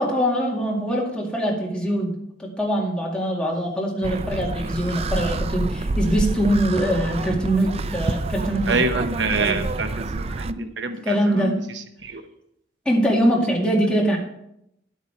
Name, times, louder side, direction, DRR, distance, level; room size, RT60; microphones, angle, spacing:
voice 1, 0.0-2.1 2.4-8.8 9.3-9.6 11.0-11.6 12.9-14.2, equal, 5° left, -3 dB, 2.3 m, -23 dB
sound 1, 4.0-10.5, right 2 dB, 35° right, 0.4 m, -27 dB
voice 2, 8.7-11.5 12.0-12.2, right 3 dB, 70° right, 7 dB, 0.9 m, -26 dB
11.0 x 8.4 x 4.5 m, 0.78 s
head